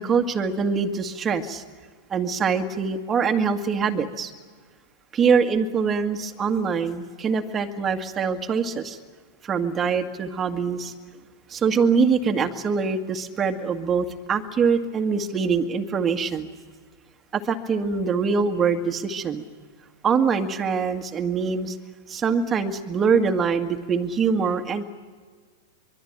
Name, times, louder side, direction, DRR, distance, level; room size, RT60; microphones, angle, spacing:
voice 1, 0.0-1.6 2.1-4.3 5.1-9.0 9.4-10.9 11.5-16.5 17.3-19.4 20.0-21.8 22.1-24.8, right 5 dB, 25° right, 5 dB, 2.0 m, -24 dB
24.0 x 23.0 x 9.0 m, 1.5 s
hypercardioid pair, 100°, 0 cm